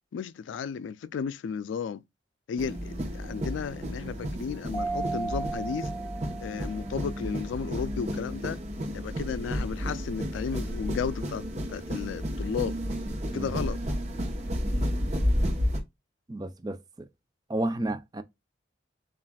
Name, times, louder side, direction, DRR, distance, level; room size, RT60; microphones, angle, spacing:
voice 1, 0.1-2.0 2.5-5.9 6.4-8.6 8.9-11.4 11.7-12.8 13.3-13.8, left 6 dB, 85° left, 0.3 m, -34 dB
sound 1, 2.6-15.8, equal, 35° right, 0.9 m, -32 dB
Mallet percussion, 4.7-7.3, right 3 dB, 25° left, 0.7 m, -35 dB
voice 2, 16.3-16.8 17.5-18.2, right 1 dB, 20° right, 0.4 m, -31 dB
7.1 x 2.4 x 2.3 m
head